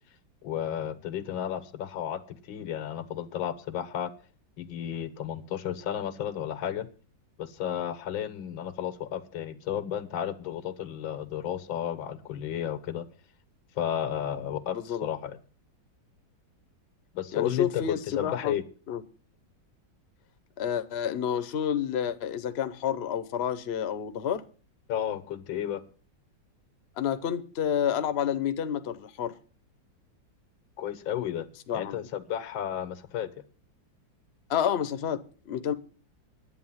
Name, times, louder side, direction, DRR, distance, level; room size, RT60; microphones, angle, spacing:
voice 1, 0.4-4.1 4.6-6.9 7.4-13.1 13.8-15.4 17.1-18.6 24.9-25.8 30.8-31.5 31.7-33.3, left 10 dB, 90° left, 1.8 m, -33 dB
voice 2, 14.7-15.1 17.3-18.5 18.9-19.0 20.6-24.4 27.0-29.3 31.7-32.0 34.5-35.7, left 9 dB, 50° left, 0.8 m, -29 dB
11.0 x 8.7 x 7.2 m
omnidirectional pair, 2.1 m